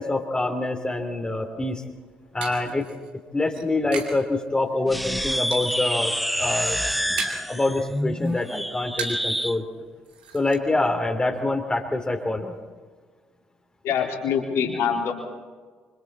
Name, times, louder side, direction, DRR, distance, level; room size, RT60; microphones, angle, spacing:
voice 1, 0.0-1.8 2.3-2.9 3.3-6.8 7.2-9.7 10.3-12.5, left 2 dB, 15° left, 2 dB, 2.8 m, -26 dB
sound 1, 1.7-4.3 4.6-5.1 5.5-6.0 6.3-7.6 7.9-9.4 9.7-9.8 10.0-10.6, right 6 dB, 80° right, 2.6 m, -37 dB
sound 2, 4.9-9.6, equal, ahead, 0.8 m, -27 dB
voice 2, 13.8-15.1, left 7 dB, 60° left, 0 dB, 3.9 m, -25 dB
26.5 x 25.5 x 4.2 m, 1.5 s
figure-of-eight pair, 50°, 5 cm